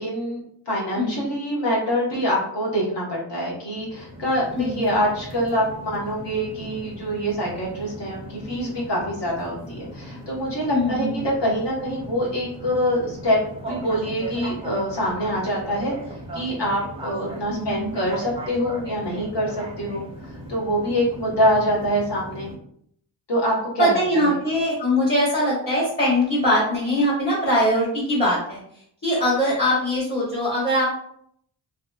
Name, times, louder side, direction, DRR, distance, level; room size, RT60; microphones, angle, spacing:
voice 1, 0.0-13.4 13.7-15.9 16.3-20.0 20.5-22.5 23.3-24.4, equal, 85° left, -4 dB, 1.2 m, -25 dB
voice 2, 0.9-1.3 4.5-5.0 10.7-11.2 17.5-18.0 23.8-28.6 29.0-30.8, equal, 25° left, -8 dB, 0.9 m, -22 dB
sound 1, 3.7-22.6, equal, 15° right, 0.5 m, -38 dB
3.0 x 2.8 x 2.3 m, 0.68 s
wide cardioid pair, 165°, 41 cm